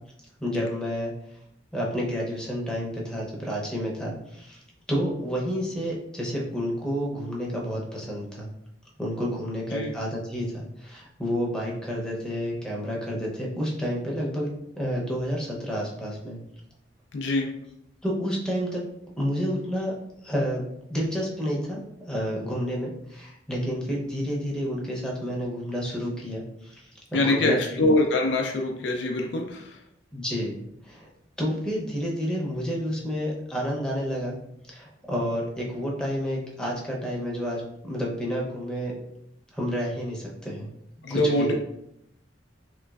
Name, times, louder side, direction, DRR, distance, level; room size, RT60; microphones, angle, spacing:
voice 1, 0.4-1.1 1.7-4.6 4.9-8.5 9.0-14.5 14.8-16.4 18.0-18.8 19.2-19.9 20.2-21.8 22.1-27.8 30.1-31.1 31.4-34.4 34.7-38.9 39.5-40.7 41.1-41.5, equal, 5° left, -3 dB, 0.6 m, -30 dB
voice 2, 17.1-17.5 27.1-29.8 41.0-41.5, left 2 dB, 70° left, 2 dB, 0.4 m, -24 dB
3.2 x 3.0 x 2.3 m, 0.79 s
head